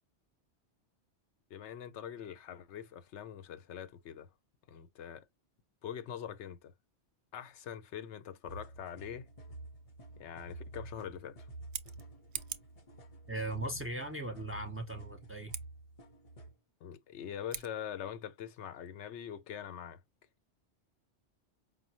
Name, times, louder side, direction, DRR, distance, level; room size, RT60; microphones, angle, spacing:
voice 1, 1.5-4.3 4.7-5.3 5.8-6.7 7.3-9.3 10.2-11.4 16.8-20.0, left 9 dB, 80° left, 0.9 m, -43 dB
sound 1, 8.5-16.5, right 2 dB, 35° left, 0.7 m, -50 dB
Scissors, 11.5-12.8 15.4-15.7 17.4-17.7, right 9 dB, 60° right, 0.6 m, -43 dB
voice 2, 13.3-15.5, right 1 dB, 15° right, 0.6 m, -38 dB
5.0 x 2.2 x 2.9 m
omnidirectional pair, 1.2 m